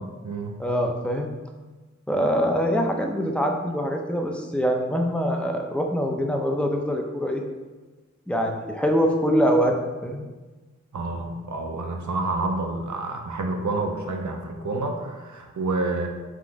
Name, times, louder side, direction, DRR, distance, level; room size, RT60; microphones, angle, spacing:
voice 1, 0.0-0.6 10.9-16.1, right 2 dB, 70° right, 3 dB, 0.5 m, -29 dB
voice 2, 0.6-1.3 2.1-7.4 8.3-10.3, equal, 5° left, 2 dB, 0.5 m, -24 dB
3.7 x 2.5 x 4.6 m, 1.3 s
wide cardioid pair, 40°, 30 cm